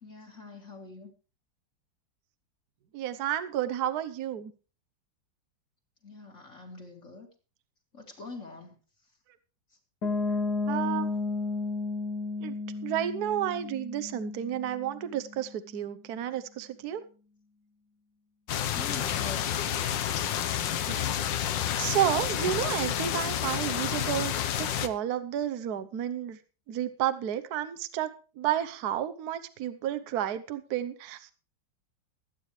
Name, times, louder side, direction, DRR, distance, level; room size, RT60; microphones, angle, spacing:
voice 1, 0.0-1.1 6.0-7.3 7.9-8.7 18.7-19.5, left 3 dB, 40° left, 1 dB, 2.9 m, -44 dB
voice 2, 2.9-4.5 10.7-11.1 12.4-12.5 12.8-17.0 19.8-20.0 20.9-21.1 21.8-24.3 24.6-26.4 26.7-31.3, right 11 dB, 60° right, 12 dB, 1.3 m, -31 dB
Piano, 10.0-15.7, left 3 dB, 60° left, 2.3 m, -33 dB
sound 1, 18.5-24.9, left 10 dB, 80° left, 1.6 m, -30 dB
21.0 x 9.4 x 3.2 m, 0.36 s
omnidirectional pair, 2.0 m